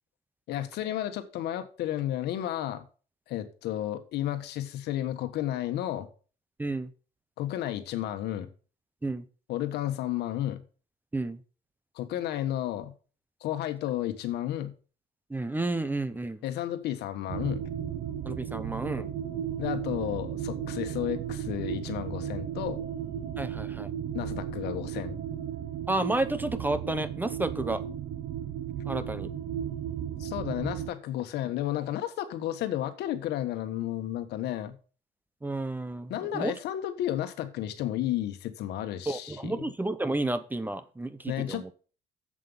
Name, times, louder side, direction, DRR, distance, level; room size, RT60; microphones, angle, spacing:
voice 1, 0.5-2.8 3.3-6.1 7.4-8.5 9.5-10.6 11.9-12.9 13.4-14.7 16.4-17.6 19.6-22.8 24.1-25.2 30.2-34.7 36.1-39.6 41.3-41.7, left 12 dB, 80° left, 9 dB, 1.4 m, -32 dB
voice 2, 6.6-6.9 9.0-9.2 11.1-11.4 15.3-16.4 18.3-19.1 23.4-23.9 25.9-27.8 28.9-29.3 35.4-36.5 39.1-41.7, right 2 dB, 10° right, 14 dB, 0.7 m, -31 dB
sound 1, 17.3-30.9, right 9 dB, 70° right, 1.0 m, -35 dB
7.6 x 7.6 x 5.5 m, 0.38 s
cardioid pair, 110°, 17 cm